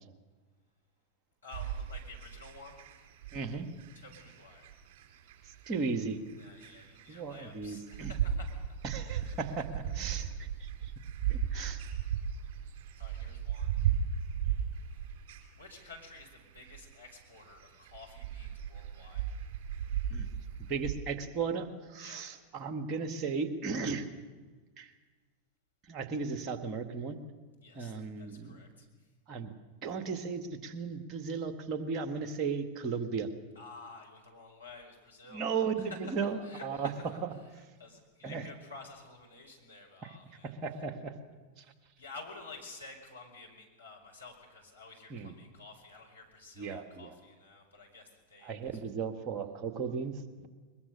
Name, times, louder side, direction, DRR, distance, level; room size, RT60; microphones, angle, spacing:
voice 1, 1.4-2.8 3.9-4.8 6.4-9.4 10.5-10.9 13.0-13.9 14.8-15.0 15.5-19.3 22.0-22.4 27.6-29.1 33.5-35.5 35.9-37.1 37.8-40.6 42.0-48.8, left 3 dB, 80° left, 0 dB, 5.0 m, -51 dB
sound 1, 1.5-20.9, right 9 dB, 50° right, 4.3 m, -36 dB
voice 2, 3.3-3.7 5.7-6.2 7.1-8.1 8.8-10.9 11.3-11.8 20.1-20.3 20.7-24.1 24.8-24.9 25.9-27.2 27.7-28.6 29.3-29.5 29.8-33.3 35.3-36.9 37.2-37.3 38.2-38.4 40.0-40.1 40.4-41.2 41.6-41.7 45.1-45.3 46.6-47.1 48.4-50.5, right 5 dB, 35° right, 8 dB, 2.0 m, -36 dB
22.0 x 22.0 x 6.6 m, 1.4 s
figure-of-eight pair, 90°, 0 cm